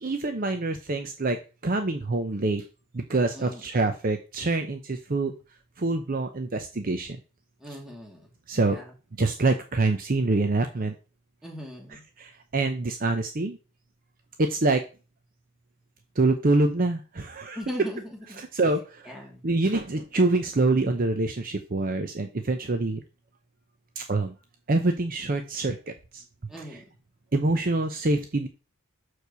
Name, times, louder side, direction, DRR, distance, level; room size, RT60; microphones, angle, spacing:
voice 1, 0.0-2.6 2.9-5.3 5.8-7.2 8.5-8.8 9.2-10.9 12.2-13.6 14.4-14.8 16.2-17.6 18.4-19.1 19.4-23.0 24.0-24.3 24.7-26.2 27.3-28.5, right 2 dB, 40° right, 0.7 m, -25 dB
voice 2, 7.6-8.3 8.7-8.9 11.4-12.0 17.5-18.4 19.1-19.4 26.5-26.8, left 1 dB, ahead, 2.5 m, -39 dB
6.6 x 4.6 x 6.8 m
head